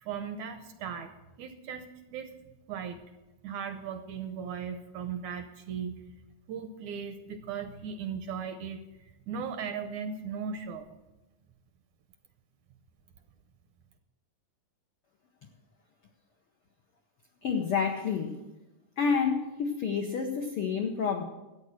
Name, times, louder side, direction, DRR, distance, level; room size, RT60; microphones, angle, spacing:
voice 1, 0.0-1.1 1.4-2.3 2.7-3.0 3.4-6.0 6.5-8.8 9.3-11.0, right 7 dB, 75° right, 7 dB, 1.9 m, -37 dB
voice 2, 17.4-18.4 19.0-21.2, left 6 dB, 85° left, 3 dB, 1.2 m, -29 dB
13.5 x 8.8 x 6.5 m, 1.0 s
omnidirectional pair, 4.0 m